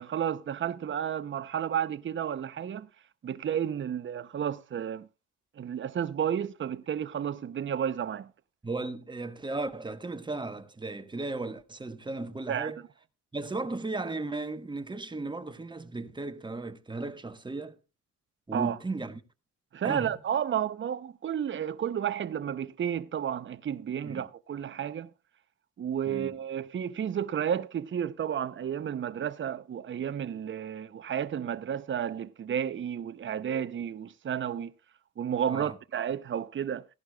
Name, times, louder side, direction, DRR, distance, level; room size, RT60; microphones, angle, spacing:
voice 1, 0.0-2.9 3.2-5.1 5.6-8.3 12.5-12.7 18.5-18.8 19.7-25.1 25.8-34.7 35.2-36.9, right 9 dB, 40° right, 0.8 m, -32 dB
voice 2, 8.6-12.8 13.3-17.8 18.5-19.2 19.8-20.1 24.0-24.3 26.0-26.4 35.5-35.8, right 3 dB, 15° right, 1.2 m, -36 dB
16.5 x 11.5 x 2.4 m
cardioid pair, 90°, 30 cm